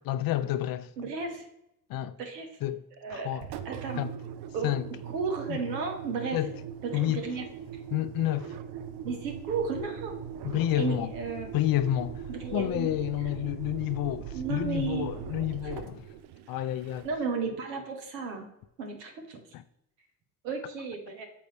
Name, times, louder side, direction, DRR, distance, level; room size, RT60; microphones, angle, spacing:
voice 1, 0.1-0.9 1.9-2.2 2.6-2.8 3.1-3.5 4.0-4.1 4.6-4.9 5.5-5.6 6.3-6.5 6.9-7.2 7.9-8.5 10.4-11.1 11.5-12.2 12.5-16.1 16.5-17.1 19.5-19.6, left 13 dB, 50° left, 0.5 m, -29 dB
voice 2, 1.0-1.4 2.2-2.5 3.0-3.3 3.6-4.1 4.5-4.7 5.1-6.4 7.1-7.4 9.0-10.1 10.7-11.5 12.3-12.9 14.3-15.1 17.0-18.5 18.8-19.4 20.4-21.2, right 5 dB, 85° right, 1.1 m, -33 dB
Engine, 3.4-17.3, right 8 dB, 55° right, 0.6 m, -40 dB
6.8 x 5.2 x 3.3 m
hypercardioid pair, 55°, 47 cm